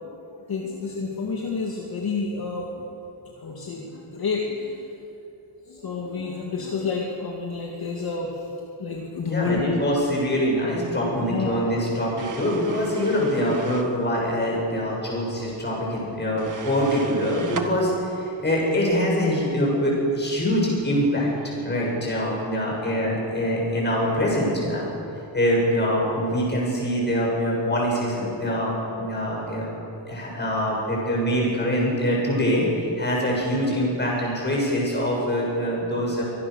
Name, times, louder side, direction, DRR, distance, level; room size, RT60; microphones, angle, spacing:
voice 1, 0.3-2.8 3.4-4.9 5.6-8.5 8.8-9.8 11.1-11.7 29.7-29.8, left 4 dB, 50° left, -1 dB, 2.5 m, -29 dB
voice 2, 9.2-24.9 25.3-29.7 30.1-36.2, equal, 20° left, -3 dB, 7.4 m, -24 dB
sound 1, 12.2-13.9 16.4-17.7, right 5 dB, 40° right, 1.7 m, -36 dB
24.5 x 19.5 x 6.6 m, 2.7 s
wide cardioid pair, 150°, 47 cm